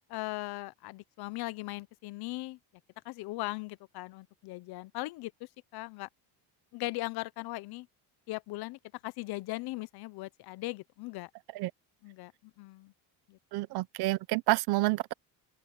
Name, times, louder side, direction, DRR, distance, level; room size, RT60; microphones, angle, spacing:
voice 1, 0.1-2.6 3.0-6.1 6.7-7.9 8.3-11.3 12.0-12.3 12.6-12.9 13.3-13.4, left 20 dB, 60° left, 0.8 m, -39 dB
voice 2, 13.5-15.1, right 21 dB, 65° right, 0.8 m, -29 dB
open air
cardioid pair, 150°, 42 cm